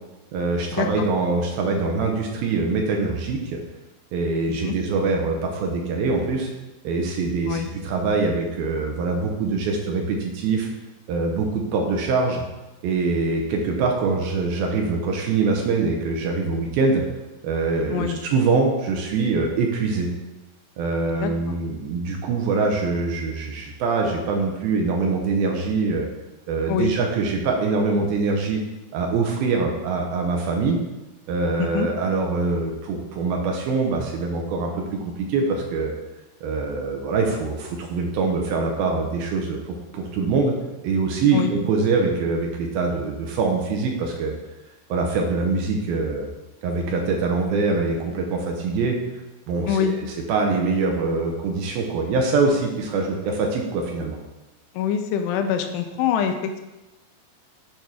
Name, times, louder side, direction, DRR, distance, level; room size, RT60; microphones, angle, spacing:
voice 1, 0.3-3.6 4.1-6.5 6.8-10.7 11.1-12.4 12.8-17.0 17.4-20.1 20.8-26.1 26.5-28.6 28.9-30.8 31.3-35.9 36.4-40.5 40.8-44.4 44.9-46.3 46.6-49.0 49.5-54.2, right 4 dB, 80° right, 1 dB, 2.4 m, -24 dB
voice 2, 21.1-21.6 26.7-26.9 31.6-31.9 41.3-41.5 49.7-50.0 54.8-56.6, left 8 dB, 85° left, 6 dB, 2.8 m, -25 dB
8.9 x 3.5 x 6.0 m, 1.0 s
omnidirectional pair, 4.8 m